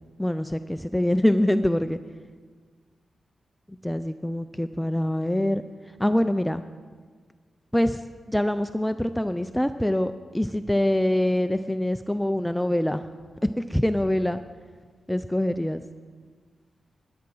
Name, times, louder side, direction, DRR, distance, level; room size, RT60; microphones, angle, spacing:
voice 1, 0.2-2.0 3.8-5.6 6.0-6.6 7.7-8.0 8.3-13.0 13.4-14.4 15.1-15.8, left 1 dB, 5° left, 10 dB, 0.3 m, -24 dB
12.0 x 8.7 x 6.1 m, 1.5 s
wide cardioid pair, 115°, 0 cm